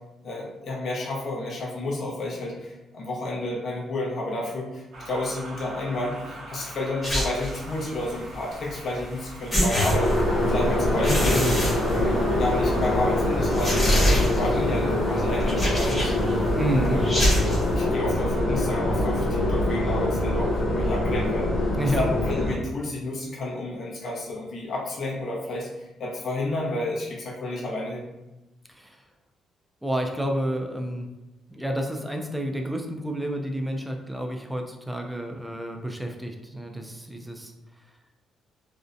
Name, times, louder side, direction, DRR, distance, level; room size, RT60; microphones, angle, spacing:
voice 1, 0.2-16.1 16.7-17.2 17.7-28.1, left 2 dB, 55° left, -4 dB, 0.7 m, -31 dB
sound 1, 4.9-12.8, right 1 dB, 70° right, 0.6 m, -43 dB
sound 2, 7.0-7.6 9.0-9.1 9.5-10.5 11.0-12.5 12.8-12.9 13.5-14.6 15.4-16.3 17.0-17.7, equal, 25° left, 1.0 m, -24 dB
sound 3, 9.9-22.5, left 1 dB, 75° left, 0.9 m, -24 dB
voice 2, 16.6-17.0 21.8-22.0 28.7-29.1 29.8-31.1 31.5-37.5, equal, 5° right, 3 dB, 0.4 m, -30 dB
2.6 x 2.1 x 2.5 m, 1.0 s
cardioid pair, 90°, 0 cm